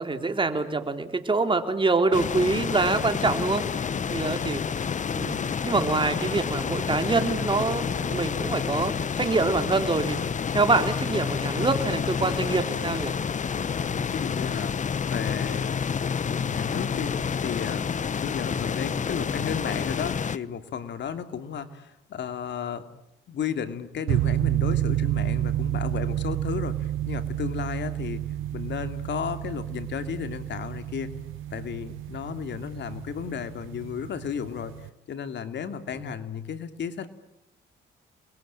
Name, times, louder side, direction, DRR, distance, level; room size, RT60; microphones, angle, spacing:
voice 1, 0.0-3.8 4.1-4.6 5.1-10.2 10.5-13.1 35.9-36.1, right 3 dB, 25° right, 7 dB, 3.7 m, -25 dB
sound 1, 2.1-20.4, left 6 dB, 40° left, 1.0 m, -29 dB
voice 2, 13.7-14.7 15.1-15.8 16.2-17.2 17.4-17.9 18.2-22.9 23.3-28.2 28.5-31.1 31.5-34.7 35.1-37.1, left 7 dB, 65° left, 9 dB, 2.9 m, -33 dB
sound 2, 24.1-34.9, right 13 dB, 85° right, 1.0 m, -30 dB
30.0 x 22.0 x 9.0 m, 0.84 s
cardioid pair, 90°, 20 cm